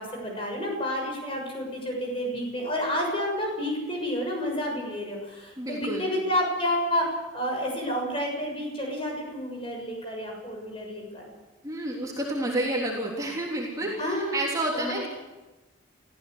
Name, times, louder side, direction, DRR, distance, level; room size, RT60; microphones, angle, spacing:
voice 1, 0.0-11.3 14.0-14.4 14.7-15.1, equal, 25° left, 1 dB, 6.8 m, -30 dB
voice 2, 5.6-6.1 11.6-15.1, right 1 dB, 15° right, -3 dB, 3.3 m, -30 dB
23.0 x 15.5 x 8.1 m, 1.1 s
head